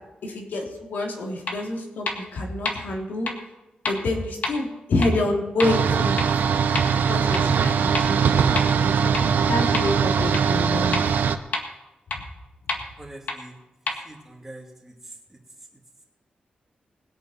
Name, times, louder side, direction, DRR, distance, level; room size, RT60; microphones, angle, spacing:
voice 1, 0.2-3.3 3.9-6.2 7.1-9.1 9.5-11.0, left 2 dB, 85° left, 0 dB, 3.1 m, -27 dB
sound 1, 1.5-1.6 2.1-2.2 2.6-2.7 3.3-3.4 3.8-3.9 4.4-4.5 5.0-5.1 5.6-5.7 6.2-6.3 6.7-6.8 7.3-7.4 7.9-8.0 8.6-8.7 9.1-9.2 9.7-9.8 10.3-10.4 10.9-11.0 11.5-11.6 12.1-12.2 12.7-12.8 13.3-13.4 13.9-14.0, left 3 dB, 60° left, 1.8 m, -27 dB
sound 2, 5.6-11.4, right 6 dB, 85° right, 0.8 m, -21 dB
voice 2, 13.0-13.6 14.0-15.4, right 1 dB, 10° right, -1 dB, 2.4 m, -44 dB
21.0 x 8.5 x 4.4 m, 0.98 s
wide cardioid pair, 145°, 3 cm